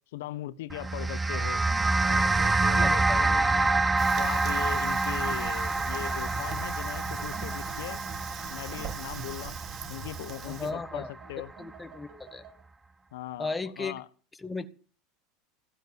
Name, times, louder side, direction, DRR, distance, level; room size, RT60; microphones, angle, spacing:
voice 1, 0.1-1.6 2.1-3.8 4.2-8.0 8.5-9.5 9.9-11.5 13.1-14.1, left 15 dB, 85° left, 1.0 m, -39 dB
sound 1, 0.7-11.2, right 3 dB, 10° right, 0.8 m, -27 dB
sound 2, 1.3-12.6, right 6 dB, 55° right, 5.6 m, -49 dB
voice 2, 2.8-3.2 10.5-11.1 11.6-12.4 13.4-13.9 14.4-14.7, left 3 dB, 10° left, 1.3 m, -35 dB
Fire, 4.0-10.7, right 8 dB, 35° right, 2.0 m, -41 dB
15.5 x 8.2 x 9.4 m
supercardioid pair, 140°, 0 cm